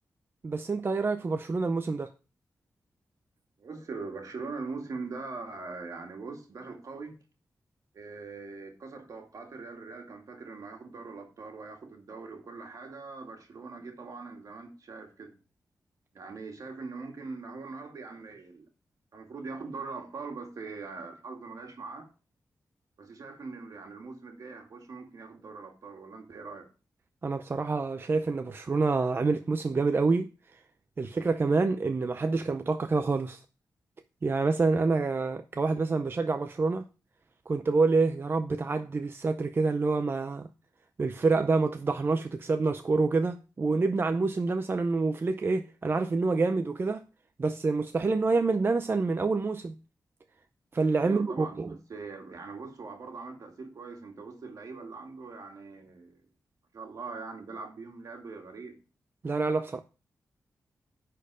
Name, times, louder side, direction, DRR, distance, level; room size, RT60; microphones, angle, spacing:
voice 1, 0.4-2.1 27.2-30.3 31.0-33.4 34.2-36.9 37.5-40.5 41.0-47.0 47.4-49.7 50.7-51.8 59.2-59.8, right 3 dB, 35° right, 0.5 m, -27 dB
voice 2, 3.6-7.2 7.9-15.4 16.1-18.7 19.1-22.1 23.0-26.7 51.0-56.2 56.7-58.8, right 4 dB, 65° right, 2.2 m, -42 dB
10.0 x 4.6 x 4.8 m
wide cardioid pair, 105°, 6 cm